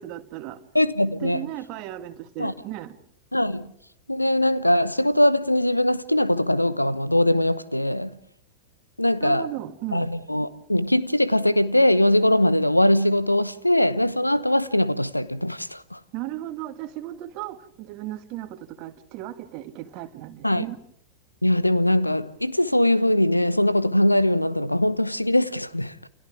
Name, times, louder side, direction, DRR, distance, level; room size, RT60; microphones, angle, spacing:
voice 1, 0.0-0.6 1.2-3.0 9.2-10.1 16.1-20.8, right 14 dB, 40° right, 2.0 m, -35 dB
voice 2, 0.7-1.5 2.4-2.5 3.3-3.7 4.1-8.2 9.0-9.5 9.9-16.0 20.4-20.6 21.4-26.1, left 1 dB, 85° left, 1.0 m, -21 dB
29.5 x 29.5 x 3.5 m
figure-of-eight pair, 90°, 0 cm